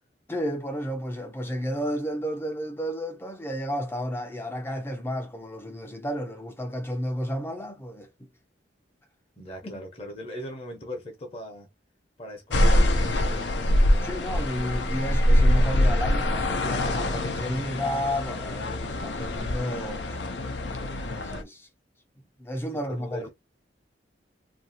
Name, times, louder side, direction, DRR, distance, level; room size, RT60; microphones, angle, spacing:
voice 1, 0.3-8.1 9.6-9.8 14.0-20.2 21.0-21.7 22.4-23.3, equal, 15° left, 0.5 m, -32 dB
voice 2, 9.4-11.7 12.2-13.6 13.9-14.5 22.7-23.3, left 1 dB, 35° left, 0.9 m, -40 dB
sound 1, 12.5-21.4, left 1 dB, 75° left, 0.5 m, -24 dB
2.8 x 2.6 x 2.7 m
head